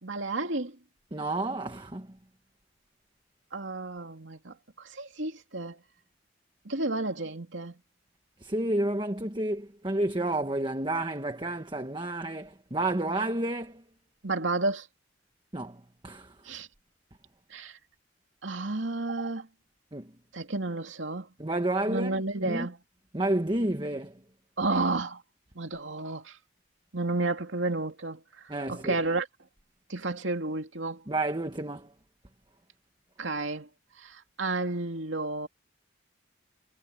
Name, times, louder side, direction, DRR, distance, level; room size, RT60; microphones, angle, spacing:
voice 1, 0.0-0.8 3.5-5.8 6.6-7.8 14.2-14.9 16.4-16.7 17.5-17.8 18.4-19.5 20.3-21.3 21.9-22.8 24.6-25.2 25.5-26.4 26.9-29.3 29.9-31.0 33.2-33.7 34.0-35.5, right 2 dB, 80° right, 2.5 m, -31 dB
voice 2, 1.1-2.2 8.4-13.8 15.5-16.5 19.9-20.1 21.4-22.7 23.1-24.2 28.5-29.0 31.1-31.9, right 1 dB, 25° right, 1.4 m, -30 dB
head